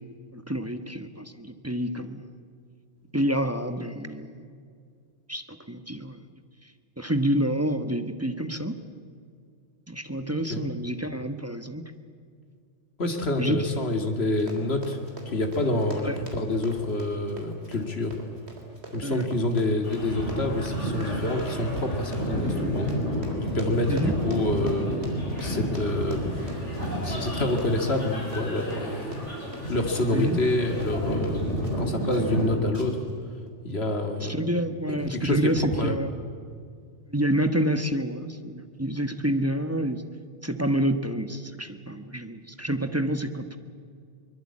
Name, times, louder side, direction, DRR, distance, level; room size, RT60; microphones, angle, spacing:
voice 1, 0.0-2.2 3.1-4.4 5.3-6.2 6.6-6.7 7.0-8.7 9.9-11.8 13.4-13.7 16.0-16.2 19.0-19.2 22.4-22.7 23.9-24.1 30.1-30.4 34.2-36.1 37.1-40.0 40.4-43.6, right 1 dB, 15° right, 8 dB, 1.2 m, -28 dB
voice 2, 10.2-10.7 13.0-15.0 15.3-18.2 18.9-22.9 23.2-23.3 23.5-25.0 25.4-26.5 27.0-29.3 29.7-33.0 33.6-34.4 35.0-35.5 35.8-36.0, left 2 dB, 60° left, 5 dB, 2.5 m, -27 dB
Run, 14.2-31.8 32.1-32.4 32.7-33.1 33.5-33.6, right 1 dB, 65° right, 4.1 m, -43 dB
sound 1, 19.8-32.6, equal, 80° left, 6.5 m, -31 dB
23.5 x 21.5 x 8.6 m, 2.2 s
omnidirectional pair, 1.2 m